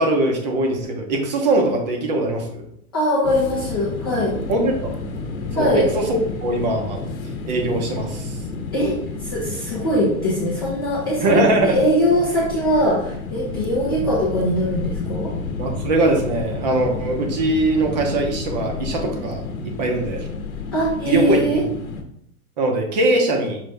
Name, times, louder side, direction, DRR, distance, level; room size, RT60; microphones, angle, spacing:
voice 1, 0.0-2.6 4.5-4.9 5.5-7.0 7.5-8.4 11.2-11.8 15.6-19.5 19.8-20.3 21.1-21.7 22.6-23.6, right 2 dB, 30° right, 3 dB, 0.7 m, -21 dB
voice 2, 2.9-4.3 5.5-5.9 8.7-8.9 9.2-15.3 20.7-21.6, equal, 15° left, -7 dB, 0.4 m, -21 dB
sound 1, 3.2-22.0, left 3 dB, 70° left, 0.9 m, -31 dB
5.5 x 2.6 x 3.3 m, 0.74 s
hypercardioid pair, 155°, 43 cm